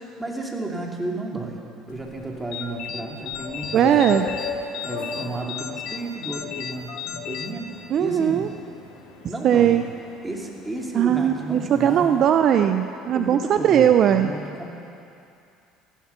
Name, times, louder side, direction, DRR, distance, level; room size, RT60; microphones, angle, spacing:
voice 1, 0.2-4.2 4.8-8.5 9.2-9.8 10.2-12.1 13.1-14.7, right 2 dB, 15° right, 0 dB, 2.5 m, -32 dB
sound 1, 1.9-12.2, left 4 dB, 85° left, 2.1 m, -39 dB
sound 2, 2.5-8.3, left 8 dB, 70° left, 0.9 m, -35 dB
voice 2, 3.7-4.3 7.9-8.5 9.4-9.8 10.9-14.3, right 9 dB, 55° right, 8 dB, 0.5 m, -19 dB
15.0 x 11.0 x 6.9 m, 2.6 s
supercardioid pair, 90°, 0 cm